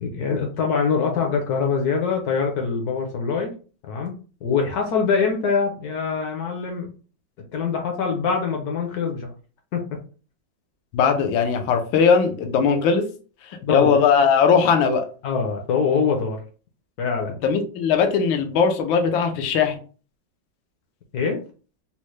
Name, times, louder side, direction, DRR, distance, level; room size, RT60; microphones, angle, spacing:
voice 1, 0.0-3.5 3.9-4.1 4.4-6.9 7.5-9.3 9.7-10.0 13.6-13.9 15.2-16.4 17.0-17.4 21.1-21.4, left 5 dB, 65° left, 3 dB, 1.0 m, -24 dB
voice 2, 10.9-13.1 13.5-15.1 17.4-19.8, left 6 dB, 85° left, 5 dB, 1.4 m, -19 dB
4.2 x 2.1 x 3.1 m, 0.38 s
omnidirectional pair, 2.1 m